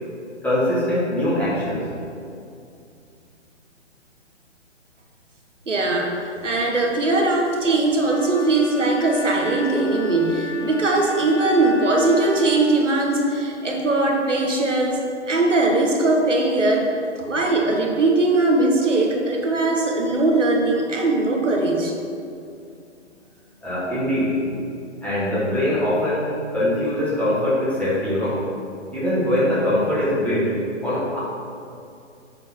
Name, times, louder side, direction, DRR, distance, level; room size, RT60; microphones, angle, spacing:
voice 1, 0.4-1.9 23.6-24.4 25.0-28.4 28.9-30.6 30.8-31.2, left 1 dB, 5° left, -10 dB, 1.4 m, -22 dB
voice 2, 5.7-15.0 15.3-16.9 17.2-21.9, right 2 dB, 80° right, 0 dB, 1.4 m, -20 dB
Wind instrument woodwind instrument, 8.0-12.8, left 1 dB, 50° left, 1.5 m, -32 dB
7.1 x 3.9 x 5.8 m, 2.5 s
figure-of-eight pair, 130°, 36 cm